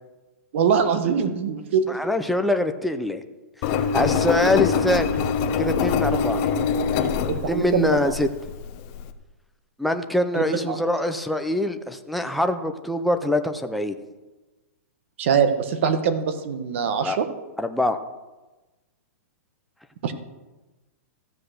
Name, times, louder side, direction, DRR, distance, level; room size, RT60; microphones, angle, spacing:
voice 1, 0.5-2.0 7.3-8.1 10.3-10.8 15.2-17.3 20.0-20.1, right 6 dB, 50° right, 9 dB, 1.3 m, -23 dB
voice 2, 1.9-3.2 3.9-5.2 5.6-6.4 7.5-8.3 9.8-13.9 17.0-17.2 17.6-18.0, left 1 dB, ahead, 6 dB, 0.5 m, -24 dB
Engine, 3.6-9.1, left 6 dB, 30° left, 0.8 m, -24 dB
14.0 x 7.9 x 6.6 m, 1.1 s
hypercardioid pair, 165°, 8 cm